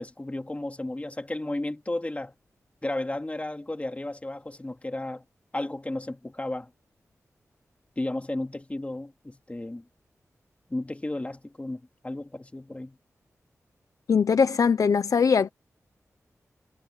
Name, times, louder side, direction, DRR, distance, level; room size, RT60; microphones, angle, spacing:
voice 1, 0.0-2.3 2.8-5.2 5.5-6.7 8.0-9.8 10.7-13.0, left 1 dB, 25° left, 2.7 m, -33 dB
voice 2, 14.1-15.5, left 6 dB, 80° left, 0.9 m, -21 dB
cardioid pair, 55°, 6 cm